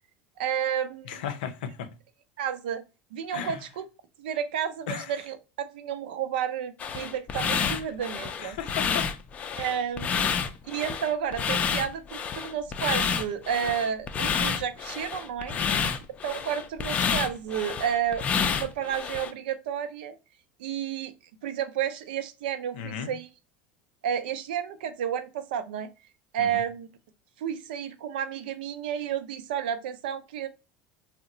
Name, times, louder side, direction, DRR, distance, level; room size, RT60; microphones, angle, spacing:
voice 1, 0.4-1.2 2.4-2.8 3.1-3.8 4.2-8.6 9.6-10.3 10.7-15.5 16.2-20.2 20.6-21.1 21.4-23.3 24.0-25.9 26.3-26.9 27.4-30.5, right 9 dB, 90° right, 0.5 m, -31 dB
voice 2, 1.1-1.9 3.3-3.6 4.9-5.1 7.7-7.8 8.4-9.2 15.5-15.9 22.7-23.1 26.4-26.6, left 8 dB, 85° left, 0.5 m, -35 dB
sound 1, 6.8-19.3, left 6 dB, 30° left, 0.4 m, -29 dB
2.8 x 2.1 x 3.7 m
supercardioid pair, 130°, 5 cm